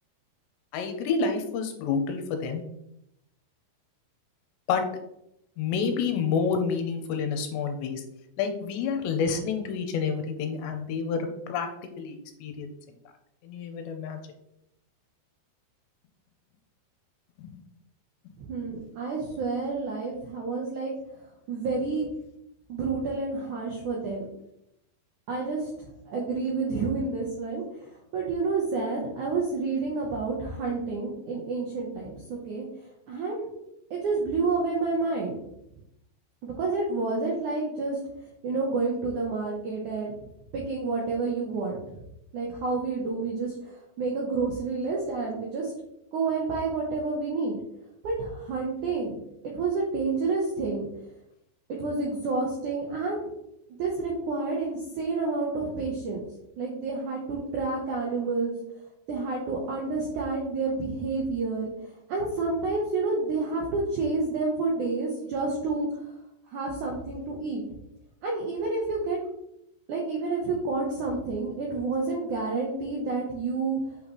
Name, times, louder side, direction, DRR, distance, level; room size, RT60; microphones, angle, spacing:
voice 1, 0.7-2.6 4.7-4.9 5.6-8.0 8.4-11.7 12.0-12.7 13.4-14.2 17.4-17.6, left 5 dB, 85° left, 6 dB, 2.9 m, -29 dB
voice 2, 18.4-20.9 21.5-22.1 22.7-24.3 25.3-27.6 28.1-32.7 33.1-33.5 33.9-35.3 36.4-38.0 38.4-40.2 40.5-41.8 42.3-45.7 46.1-47.6 48.0-49.2 49.5-50.9 51.8-53.3 53.8-56.2 56.6-58.6 59.1-61.7 62.1-66.0 66.5-67.6 68.2-69.2 69.9-73.8, right 3 dB, 80° right, -2 dB, 1.7 m, -29 dB
8.7 x 5.5 x 3.2 m, 0.81 s
omnidirectional pair, 5.2 m